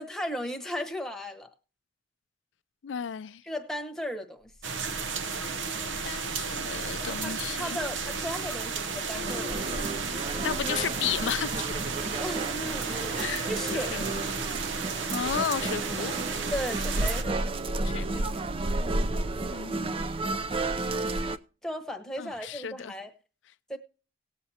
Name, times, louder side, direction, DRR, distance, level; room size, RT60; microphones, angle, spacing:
voice 1, 0.0-1.5 3.5-4.5 7.0-9.7 12.2-14.1 16.5-17.9 18.8-19.3 21.6-23.1 23.7-23.8, equal, 5° left, 1.0 m, -36 dB
voice 2, 2.8-3.4 6.0-7.8 10.4-11.8 13.1-14.2 15.1-16.2 17.8-18.3 19.5-20.1 22.2-22.9, left 8 dB, 80° left, 0.4 m, -34 dB
Purr, 4.4-15.7, left 1 dB, 55° right, 2.1 m, -46 dB
sound 1, 4.6-17.2, right 5 dB, 85° right, 0.7 m, -33 dB
sound 2, 9.2-21.4, right 2 dB, 30° right, 0.4 m, -32 dB
18.5 x 7.6 x 2.8 m
head